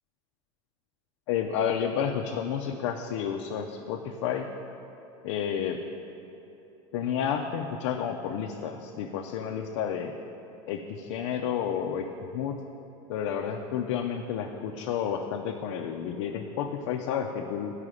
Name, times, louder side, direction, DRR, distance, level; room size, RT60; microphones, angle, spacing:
voice 1, 1.3-4.5 5.2-5.8 6.9-10.1 10.7-12.1 12.3-12.6 13.1-17.7, left 8 dB, 80° left, 2 dB, 0.5 m, -31 dB
9.5 x 4.9 x 4.9 m, 3.0 s
supercardioid pair, 125°, 15 cm